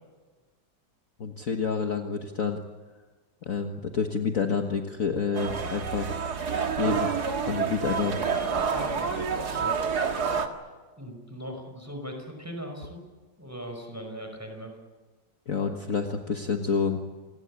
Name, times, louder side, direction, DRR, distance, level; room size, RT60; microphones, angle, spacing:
voice 1, 1.2-2.6 3.5-6.2 6.8-7.1 7.5-8.2 15.5-17.0, left 5 dB, 45° left, 4 dB, 1.8 m, -28 dB
sound 1, 5.3-10.5, right 6 dB, 55° right, 2.3 m, -28 dB
voice 2, 8.6-9.1 9.4-9.8 11.0-13.0 13.4-14.7, equal, 10° right, 4 dB, 5.4 m, -39 dB
28.5 x 20.0 x 8.6 m, 1.3 s
omnidirectional pair, 2.0 m